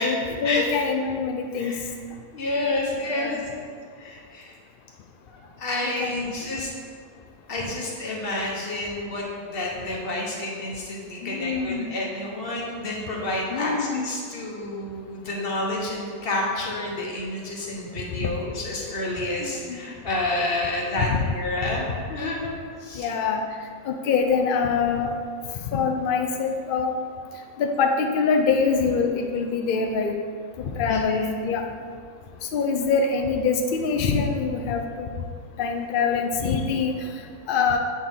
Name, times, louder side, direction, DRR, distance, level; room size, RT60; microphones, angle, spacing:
voice 1, 0.0-1.7 3.1-3.4 5.8-6.4 11.2-11.9 13.5-14.1 18.2-18.3 19.4-19.8 21.0-21.2 23.0-23.4 23.8-25.1 25.7-26.9 27.6-30.2 30.6-31.6 32.5-35.1 35.6-36.9 37.5-37.8, left 5 dB, 75° left, 3 dB, 0.4 m, -24 dB
voice 2, 2.3-3.6 4.0-4.5 5.3-6.7 7.5-23.1 30.9-31.3, left 2 dB, 45° left, -2 dB, 1.2 m, -29 dB
7.5 x 4.4 x 3.5 m, 2.1 s
omnidirectional pair, 1.4 m